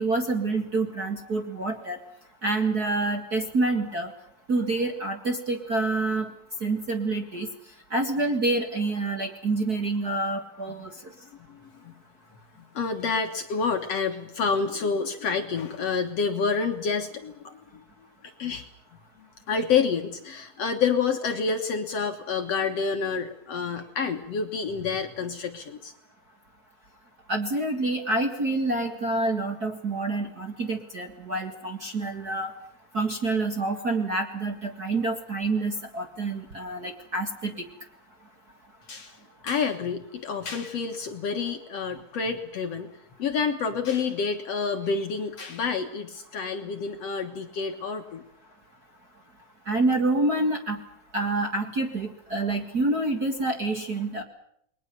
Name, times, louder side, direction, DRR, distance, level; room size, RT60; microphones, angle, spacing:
voice 1, 0.0-2.0 2.4-4.1 4.5-6.3 6.6-7.5 7.9-10.9 27.3-32.5 32.9-37.5 49.7-50.8 51.1-54.2, right 2 dB, 35° right, 4 dB, 1.9 m, -27 dB
voice 2, 11.5-11.9 12.7-17.8 18.2-18.7 19.5-25.9 38.9-39.2 39.4-42.9 43.2-48.2, left 5 dB, 55° left, 6 dB, 2.2 m, -28 dB
29.5 x 21.5 x 6.9 m, 0.72 s
omnidirectional pair, 4.1 m